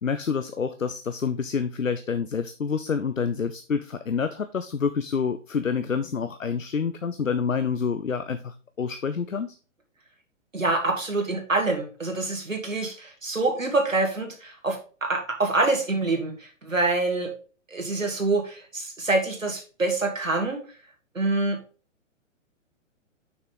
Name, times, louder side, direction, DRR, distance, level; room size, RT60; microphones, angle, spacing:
voice 1, 0.0-9.6, left 6 dB, 85° left, 11 dB, 0.6 m, -28 dB
voice 2, 10.5-17.3 17.7-20.6 21.1-21.6, right 2 dB, 80° right, 3 dB, 2.3 m, -26 dB
6.3 x 6.0 x 3.8 m, 0.37 s
figure-of-eight pair, 120°, 38 cm